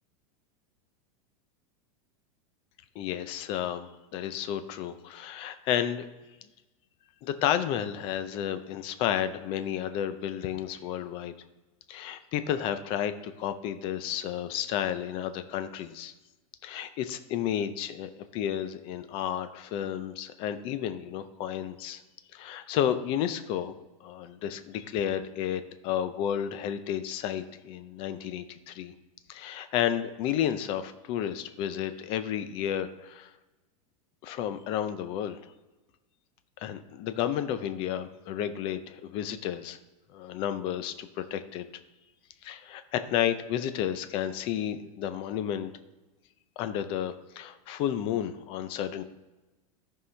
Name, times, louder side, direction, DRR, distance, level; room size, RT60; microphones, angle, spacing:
voice 1, 3.0-6.0 7.2-11.3 11.9-16.1 16.6-22.0 22.3-23.7 24.0-28.9 29.3-33.3 34.2-35.4 36.6-39.8 40.1-41.6 42.4-45.7 46.6-49.0, left 10 dB, 30° left, 11 dB, 0.5 m, -32 dB
14.0 x 5.5 x 3.3 m, 1.1 s
supercardioid pair, 170°, 18 cm